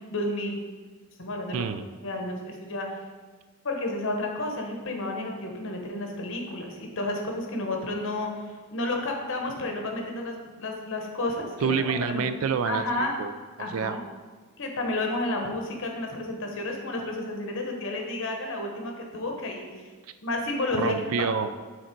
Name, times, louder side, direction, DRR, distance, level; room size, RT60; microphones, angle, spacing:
voice 1, 0.1-0.6 1.2-1.7 2.0-3.0 3.6-11.8 12.1-12.3 12.6-13.1 13.6-14.0 14.6-19.9 20.2-21.3, left 2 dB, 60° left, 2 dB, 1.1 m, -31 dB
voice 2, 1.5-1.9 11.6-13.3 13.7-14.0 20.7-21.6, right 6 dB, 65° right, 11 dB, 0.4 m, -28 dB
6.4 x 4.1 x 4.5 m, 1.4 s
head